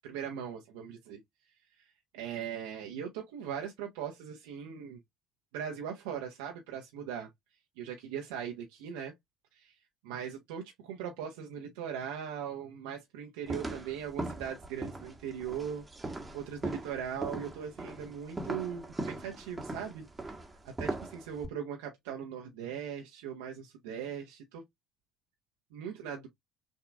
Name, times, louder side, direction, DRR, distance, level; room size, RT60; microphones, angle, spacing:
voice 1, 0.0-1.2 1.8-5.0 5.5-7.3 7.8-9.1 9.5-9.7 10.0-20.1 20.6-24.6 25.7-26.3, right 8 dB, 70° right, 0.9 m, -40 dB
sound 1, 13.5-21.5, right 2 dB, 15° right, 1.3 m, -39 dB
6.2 x 2.8 x 2.4 m
figure-of-eight pair, 55°, 0 cm